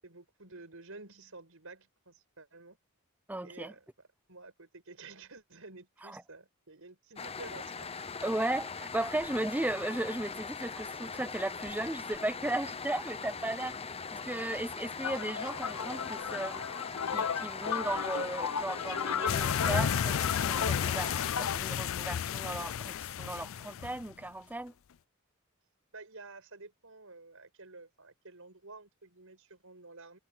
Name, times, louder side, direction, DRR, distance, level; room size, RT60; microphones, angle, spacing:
voice 1, 0.0-2.8 3.4-7.9 25.9-30.2, right 3 dB, 70° right, 7.7 m, -51 dB
voice 2, 3.3-3.7 6.0-6.2 8.2-13.8 14.1-16.6 17.1-21.1 21.4-24.7, right 1 dB, 10° right, 0.5 m, -36 dB
sound 1, 7.2-21.3, left 5 dB, 30° left, 0.9 m, -41 dB
sound 2, 15.0-21.6, left 7 dB, 85° left, 0.9 m, -35 dB
sound 3, 19.3-24.1, left 8 dB, 65° left, 0.4 m, -32 dB
head